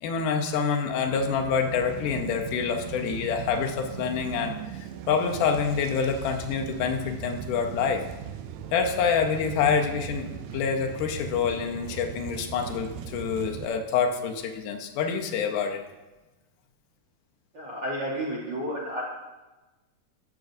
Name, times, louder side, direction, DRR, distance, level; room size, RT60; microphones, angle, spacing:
voice 1, 0.0-8.0 8.7-15.8, left 6 dB, 80° left, 4 dB, 2.3 m, -27 dB
sound 1, 1.0-13.7, right 9 dB, 80° right, 1.8 m, -39 dB
voice 2, 17.5-19.0, equal, 50° right, -6 dB, 1.3 m, -31 dB
12.0 x 7.7 x 2.6 m, 1.1 s
omnidirectional pair, 3.7 m